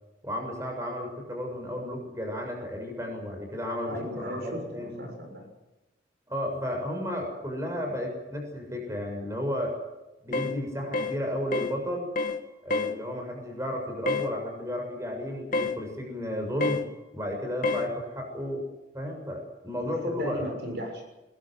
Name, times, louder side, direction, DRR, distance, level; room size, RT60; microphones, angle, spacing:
voice 1, 0.2-5.0 6.3-9.8 10.2-12.1 12.6-16.8 17.1-18.6 18.9-20.5, left 1 dB, 15° right, 2 dB, 7.0 m, -33 dB
voice 2, 3.8-5.5 20.0-21.0, equal, 55° right, 4 dB, 6.5 m, -36 dB
sound 1, 10.3-10.6 10.9-11.2 11.5-11.8 12.2-12.4 12.7-13.0 14.1-14.3 15.5-15.8 16.6-16.9 17.6-17.9, left 3 dB, 45° left, 2.1 m, -28 dB
22.5 x 22.0 x 7.9 m, 1.0 s
head